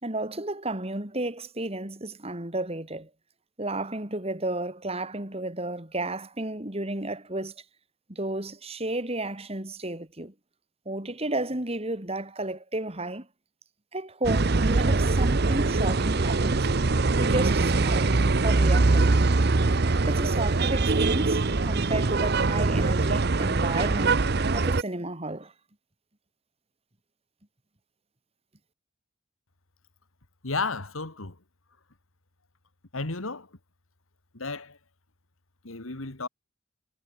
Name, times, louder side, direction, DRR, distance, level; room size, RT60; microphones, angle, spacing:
voice 1, 0.0-3.1 3.6-7.5 8.1-10.3 10.9-13.3 13.9-16.7 17.2-19.3 20.1-24.3 24.5-25.5, right 2 dB, 30° right, 2.6 m, -32 dB
sound 1, 14.2-24.8, right 3 dB, 50° right, 0.8 m, -23 dB
voice 2, 30.4-31.4 32.9-33.5 34.3-34.8 35.6-36.3, left 3 dB, 80° left, 2.3 m, -33 dB
head